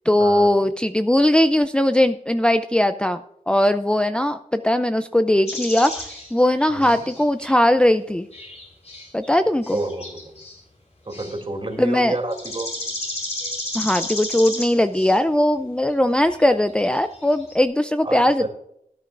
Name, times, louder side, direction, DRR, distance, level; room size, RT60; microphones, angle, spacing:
voice 1, 0.1-3.2 3.5-8.3 9.1-9.8 11.8-12.2 13.7-18.5, left 1 dB, 5° left, 8 dB, 0.4 m, -19 dB
sound 1, 5.5-7.5 8.3-9.4 9.6-10.6 11.1-11.4 11.7-11.8 12.3-15.2 15.9-16.0 16.2-16.4 16.8-17.5, left 1 dB, 50° left, 4.1 m, -33 dB
voice 2, 9.7-10.3 11.0-12.7 18.0-18.5, right 2 dB, 40° right, 3 dB, 2.9 m, -29 dB
18.0 x 9.1 x 2.5 m, 0.75 s
wide cardioid pair, 85°, 14 cm